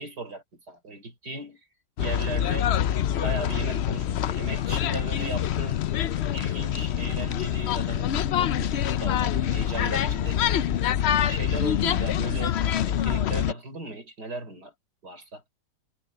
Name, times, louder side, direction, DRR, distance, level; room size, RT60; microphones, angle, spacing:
voice 1, 0.0-1.6 2.0-5.8 6.3-10.8 11.3-12.6 12.9-14.7 15.0-15.4, right 2 dB, 70° right, 6.1 m, -37 dB
sound 1, 2.0-13.5, left 10 dB, 75° left, 0.6 m, -25 dB
omnidirectional pair, 1.8 m